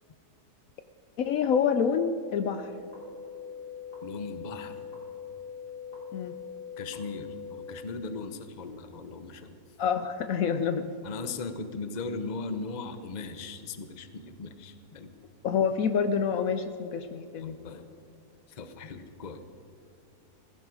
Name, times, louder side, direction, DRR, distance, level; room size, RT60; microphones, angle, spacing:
voice 1, 1.2-2.7 6.1-6.3 9.8-10.9 15.4-17.8, left 6 dB, 65° left, 10 dB, 1.0 m, -27 dB
sound 1, 2.7-7.7, left 6 dB, 90° left, 4.0 m, -42 dB
voice 2, 4.0-4.8 6.8-9.6 11.0-15.1 17.4-17.9 18.5-19.4, left 3 dB, 35° left, 9 dB, 0.8 m, -38 dB
18.0 x 15.5 x 4.9 m, 2.6 s
omnidirectional pair, 1.7 m